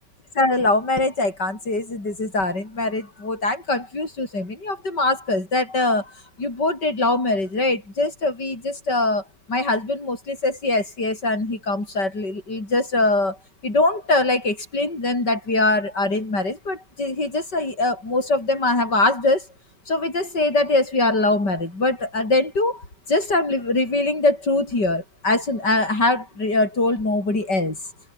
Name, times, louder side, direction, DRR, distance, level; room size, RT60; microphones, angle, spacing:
voice 1, 0.4-6.1 6.4-9.2 9.5-13.4 13.6-19.4 19.9-27.8, left 2 dB, 75° left, 7.4 m, -22 dB
omnidirectional pair, 1.9 m